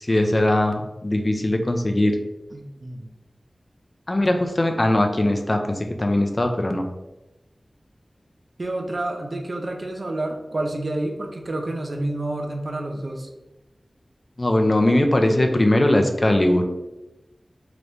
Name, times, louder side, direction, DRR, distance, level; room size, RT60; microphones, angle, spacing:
voice 1, 0.0-2.2 4.1-6.9 14.4-16.6, left 1 dB, 40° left, 4 dB, 0.4 m, -20 dB
voice 2, 2.5-3.1 8.6-13.3, right 1 dB, 60° right, 2 dB, 0.5 m, -29 dB
2.9 x 2.6 x 3.3 m, 1.0 s
cardioid pair, 40°, 0 cm